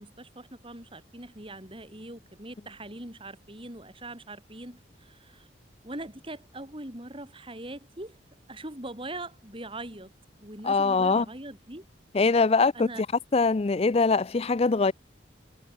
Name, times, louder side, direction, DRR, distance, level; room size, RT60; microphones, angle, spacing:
voice 1, 0.0-5.5 5.8-8.2 8.5-10.1 10.4-11.8 12.7-13.0, right 1 dB, 30° right, 6.8 m, -41 dB
voice 2, 10.6-11.3 12.1-13.1 13.3-14.9, left 4 dB, 30° left, 0.4 m, -23 dB
head